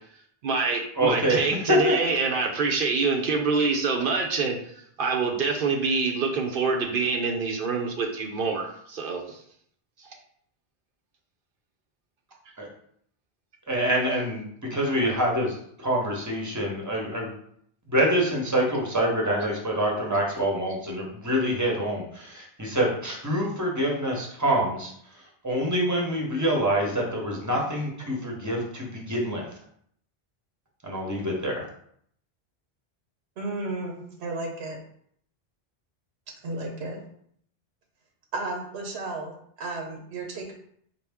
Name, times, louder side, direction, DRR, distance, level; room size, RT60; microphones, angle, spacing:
voice 1, 0.4-4.6 5.0-9.4 10.0-10.1, right 4 dB, 65° right, 1 dB, 0.7 m, -26 dB
voice 2, 1.0-1.4 1.7-1.9 12.6-12.7 13.7-17.3 17.9-24.9 25.4-29.5 30.8-31.6, equal, 20° right, -2 dB, 0.8 m, -26 dB
voice 3, 33.4-34.8 36.4-37.0 38.3-40.5, right 2 dB, 90° right, 1 dB, 1.0 m, -33 dB
4.3 x 2.2 x 3.4 m, 0.66 s
omnidirectional pair, 1.1 m